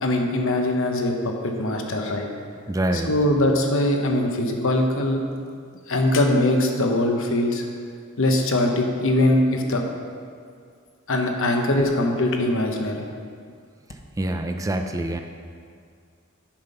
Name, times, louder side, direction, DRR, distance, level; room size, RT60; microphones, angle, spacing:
voice 1, 0.0-2.3 3.0-5.2 5.9-7.6 8.2-9.8 11.1-13.0, left 1 dB, 65° left, 2 dB, 1.0 m, -22 dB
voice 2, 2.7-3.1 14.2-15.2, right 1 dB, 15° right, 5 dB, 0.4 m, -25 dB
8.6 x 5.9 x 5.5 m, 2.2 s
head